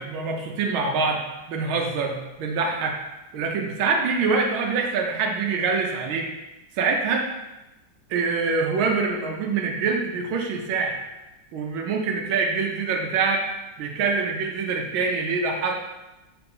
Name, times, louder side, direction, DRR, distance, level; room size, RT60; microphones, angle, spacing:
voice 1, 0.0-3.0 3.3-6.3 6.7-7.2 8.1-11.0 11.5-13.5 13.8-15.7, right 4 dB, 90° right, 1 dB, 1.7 m, -25 dB
5.9 x 4.1 x 5.4 m, 1.0 s
omnidirectional pair, 2.1 m